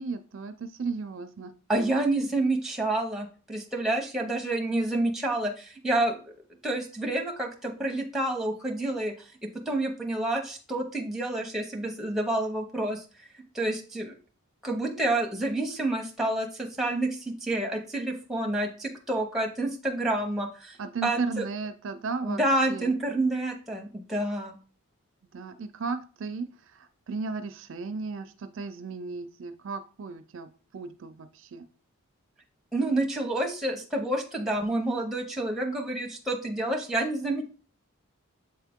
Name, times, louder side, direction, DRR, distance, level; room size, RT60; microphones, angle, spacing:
voice 1, 0.0-1.5 20.8-22.4 22.7-22.9 25.3-31.7, right 4 dB, 60° right, 10 dB, 0.4 m, -35 dB
voice 2, 1.7-6.2 6.6-9.3 9.7-13.0 13.5-14.1 14.6-20.8 21.0-21.4 22.2-24.6 32.7-37.5, right 2 dB, ahead, 1 dB, 0.8 m, -28 dB
7.6 x 3.7 x 3.5 m, 0.37 s
head